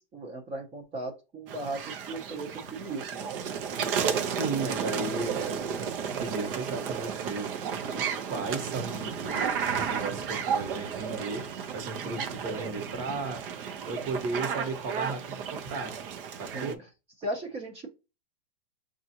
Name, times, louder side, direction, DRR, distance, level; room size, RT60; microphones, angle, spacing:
voice 1, 0.0-3.3 12.0-12.2 16.5-16.8 17.2-17.9, right 2 dB, 20° right, 0.6 m, -37 dB
sound 1, 1.5-16.7, right 7 dB, 65° right, 0.8 m, -33 dB
voice 2, 3.8-11.5 11.7-16.0 16.3-16.8, right 3 dB, 35° right, 1.1 m, -36 dB
5.8 x 2.5 x 2.8 m
supercardioid pair, 155°, 30 cm